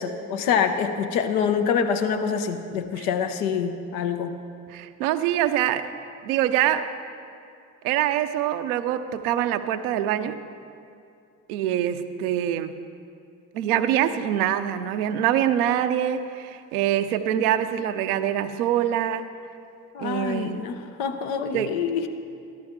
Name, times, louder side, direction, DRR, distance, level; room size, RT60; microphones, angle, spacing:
voice 1, 0.0-4.4 19.9-22.1, left 7 dB, 85° left, 8 dB, 0.7 m, -26 dB
voice 2, 4.7-5.9 6.2-6.9 7.8-10.4 11.5-12.8 13.5-19.3 20.0-20.8 21.5-21.8, right 11 dB, 85° right, 9 dB, 0.6 m, -24 dB
14.0 x 12.5 x 3.6 m, 2.5 s
hypercardioid pair, 50°, 43 cm